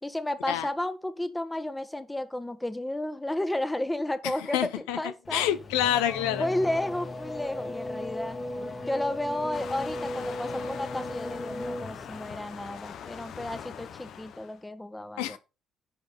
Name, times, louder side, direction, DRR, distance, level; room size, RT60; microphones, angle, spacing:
voice 1, 0.0-5.5 6.4-8.4 8.9-15.4, left 1 dB, 10° left, 1.4 m, -32 dB
voice 2, 4.2-5.0 5.3-6.5 15.2-15.4, left 11 dB, 85° left, 0.7 m, -27 dB
Race car auto racing / Accelerating revving vroom, 5.2-12.5, left 1 dB, 45° left, 2.5 m, -36 dB
Waves surf, 9.5-14.6, left 8 dB, 65° left, 0.9 m, -42 dB
10.5 x 5.8 x 4.1 m
supercardioid pair, 65°, 0 cm